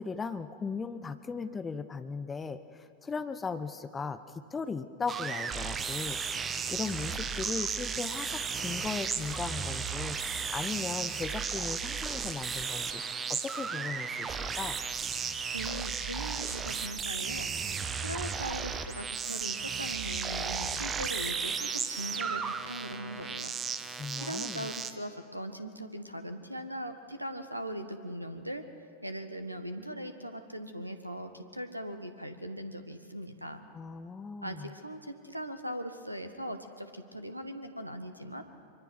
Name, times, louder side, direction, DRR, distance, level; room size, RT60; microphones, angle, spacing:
voice 1, 0.0-2.6 3.0-10.2 10.5-13.0 13.3-14.8 24.0-24.7 33.7-34.7, left 5 dB, 15° left, 10 dB, 1.1 m, -37 dB
sound 1, 5.1-24.9, right 6 dB, 20° right, 1.2 m, -34 dB
voice 2, 15.5-17.5 18.0-23.5 24.1-28.6 29.0-33.6 34.4-38.4, equal, 85° right, 8 dB, 1.6 m, -40 dB
24.5 x 24.5 x 6.1 m, 2.3 s
figure-of-eight pair, 90°, 0 cm